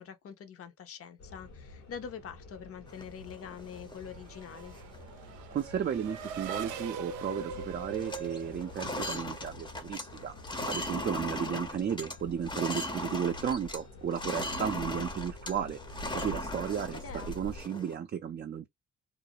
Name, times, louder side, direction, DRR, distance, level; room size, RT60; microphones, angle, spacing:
voice 1, 0.0-4.7 11.3-11.6 16.6-17.3, left 7 dB, 50° left, 0.7 m, -45 dB
sound 1, 1.2-17.6, left 1 dB, 65° left, 1.0 m, -48 dB
sound 2, 2.9-4.0 4.4-4.5 4.8-5.1 5.6-5.8 6.1-7.1 7.4-7.6 7.9-13.8 14.1-18.0, left 1 dB, 15° left, 0.6 m, -38 dB
Race car auto racing / Accelerating revving vroom, 3.5-9.6, right 6 dB, 90° right, 0.5 m, -42 dB
voice 2, 5.5-10.3 10.7-17.0 17.3-18.7, right 8 dB, 35° right, 0.4 m, -34 dB
2.5 x 2.0 x 2.7 m
cardioid pair, 90°, 30 cm